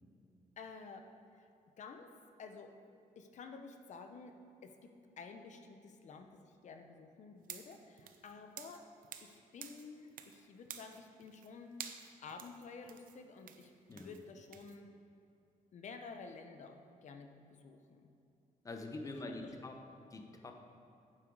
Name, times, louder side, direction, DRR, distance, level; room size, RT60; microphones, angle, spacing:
voice 1, 0.6-1.1 1.3-1.5 1.8-2.1 2.4-2.7 3.2-4.3 4.6-8.9 9.2-14.9 15.7-18.1 19.0-19.7, left 4 dB, 55° left, 6 dB, 0.8 m, -52 dB
sound 1, 7.4-9.4 9.6-10.4 10.7-11.5 11.8-14.8, right 9 dB, 75° right, 0.6 m, -50 dB
voice 2, 18.6-19.8 20.1-20.5, left 2 dB, 25° left, 4 dB, 0.8 m, -45 dB
9.0 x 7.4 x 4.7 m, 2.7 s
cardioid pair, 140°, 14 cm